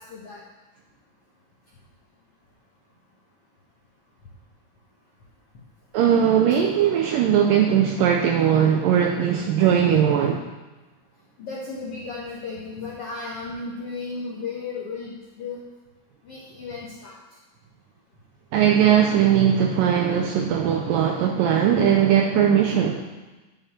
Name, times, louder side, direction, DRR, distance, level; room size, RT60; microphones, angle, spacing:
voice 1, 0.1-0.4 6.5-6.6 11.4-15.6 16.2-17.2, left 4 dB, 75° left, -4 dB, 1.3 m, -34 dB
voice 2, 5.9-10.5 18.5-23.1, right 9 dB, 90° right, 3 dB, 2.0 m, -19 dB
10.5 x 5.7 x 7.1 m, 1.2 s
omnidirectional pair, 4.7 m